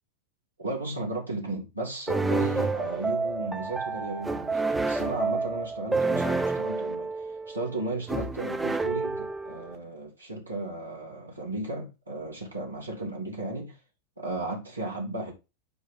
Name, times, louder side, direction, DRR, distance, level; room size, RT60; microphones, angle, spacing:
voice 1, 0.6-13.8 14.2-15.3, right 2 dB, 85° right, 2.4 m, -35 dB
sound 1, 2.1-9.8, right 3 dB, 5° right, 0.7 m, -29 dB
9.4 x 3.2 x 3.7 m
figure-of-eight pair, 90°, 0 cm